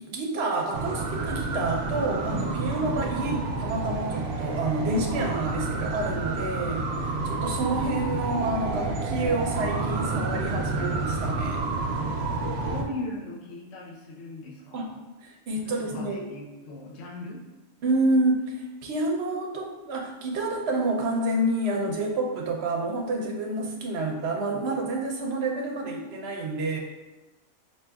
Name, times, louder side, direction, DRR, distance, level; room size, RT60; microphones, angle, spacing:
voice 1, 0.0-11.6 14.7-15.0 15.2-16.3 17.8-18.6 18.8-26.8, right 2 dB, 60° right, 0 dB, 0.8 m, -28 dB
sound 1, 0.7-12.8, right 3 dB, 90° right, 1.0 m, -29 dB
voice 2, 12.4-15.0 15.8-17.4, left 2 dB, 60° left, -3 dB, 0.9 m, -39 dB
5.1 x 2.8 x 2.3 m, 1.1 s
omnidirectional pair, 1.5 m